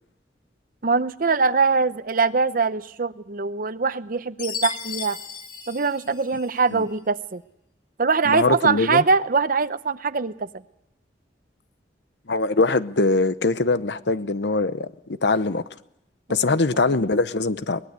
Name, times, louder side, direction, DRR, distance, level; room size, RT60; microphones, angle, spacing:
voice 1, 0.8-5.2 5.7-7.4 8.0-10.5 16.5-16.6, right 4 dB, 50° right, 0.8 m, -22 dB
Chime, 4.4-6.7, left 6 dB, 25° left, 1.9 m, -34 dB
voice 2, 8.2-9.0 12.3-14.9 15.2-15.6 16.3-17.8, left 3 dB, 75° left, 0.9 m, -22 dB
23.0 x 19.5 x 8.2 m
head